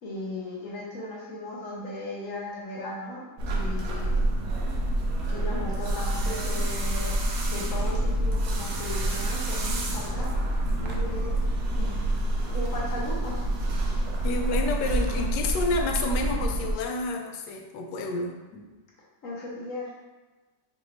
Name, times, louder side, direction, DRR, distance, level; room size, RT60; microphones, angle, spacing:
voice 1, 0.0-4.1 5.3-7.1 7.5-10.3 10.8-11.3 11.7-12.0 12.3-13.4 19.2-19.8, left 1 dB, 55° left, -5 dB, 1.1 m, -37 dB
sound 1, 3.4-16.8, right 1 dB, 75° right, 1.2 m, -27 dB
voice 2, 14.2-18.7, left 2 dB, 80° left, 3 dB, 1.2 m, -30 dB
5.2 x 2.6 x 3.0 m, 1.2 s
omnidirectional pair, 1.8 m